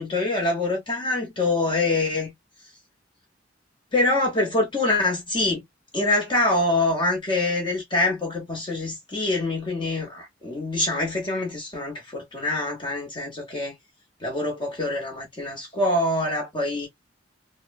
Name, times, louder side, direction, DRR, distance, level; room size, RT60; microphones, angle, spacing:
voice 1, 0.0-2.3 3.9-5.6 5.9-13.7 14.2-16.9, left 2 dB, 25° left, 0.8 m, -25 dB
2.9 x 2.0 x 2.2 m
head